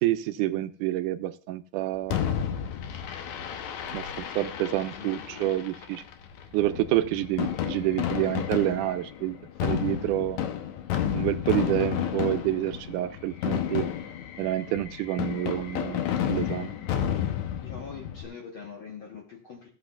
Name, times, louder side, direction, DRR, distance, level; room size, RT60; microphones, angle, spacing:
voice 1, 0.0-2.2 3.9-6.0 6.5-9.4 9.6-10.4 11.1-13.9 14.4-16.7, right 14 dB, 85° right, 10 dB, 2.1 m, -28 dB
Fireworks, 2.1-18.2, left 9 dB, 70° left, 2.0 m, -31 dB
voice 2, 4.4-5.5 6.4-6.6 17.5-19.7, left 6 dB, 55° left, -1 dB, 1.5 m, -44 dB
15.5 x 8.2 x 2.3 m, 0.39 s
omnidirectional pair, 3.6 m